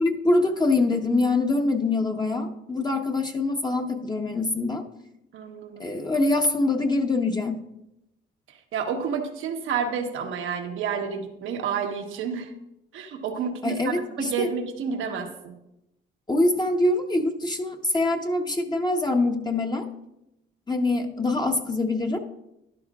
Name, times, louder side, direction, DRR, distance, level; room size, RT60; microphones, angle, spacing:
voice 1, 0.0-4.8 5.8-7.6 13.6-14.5 16.3-19.9 20.7-22.2, left 2 dB, 20° left, 3 dB, 0.9 m, -24 dB
voice 2, 5.3-5.9 8.5-12.5 12.9-15.6, right 6 dB, 85° right, 4 dB, 1.2 m, -30 dB
12.0 x 11.0 x 2.4 m, 0.87 s
cardioid pair, 90°, 20 cm